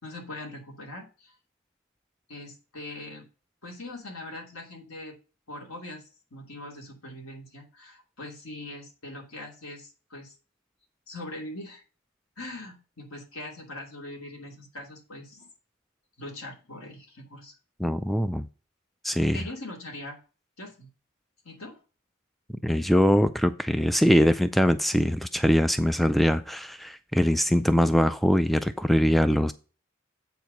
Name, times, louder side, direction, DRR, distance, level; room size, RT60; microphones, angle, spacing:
voice 1, 0.0-1.3 2.3-3.3 3.6-5.1 5.5-6.0 6.3-10.4 11.1-11.8 12.4-15.5 16.2-17.5 19.3-20.2 20.6-20.9 21.4-21.8, left 1 dB, 85° left, 2.7 m, -41 dB
voice 2, 17.8-18.5 19.0-19.4 22.6-29.5, equal, ahead, 0.3 m, -22 dB
8.1 x 4.7 x 5.2 m
head